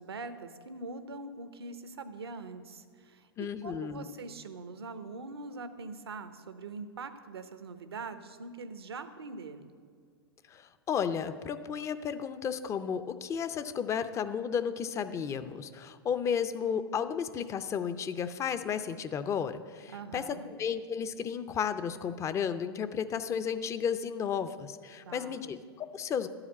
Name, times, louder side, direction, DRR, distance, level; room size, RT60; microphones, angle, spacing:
voice 1, 0.0-3.3 3.6-9.7 19.9-20.5 25.1-25.5, right 3 dB, 80° right, 10 dB, 0.8 m, -43 dB
voice 2, 3.4-4.1 10.5-26.3, left 7 dB, 20° left, 11 dB, 0.5 m, -33 dB
12.0 x 4.9 x 8.3 m, 2.1 s
hypercardioid pair, 105°, 13 cm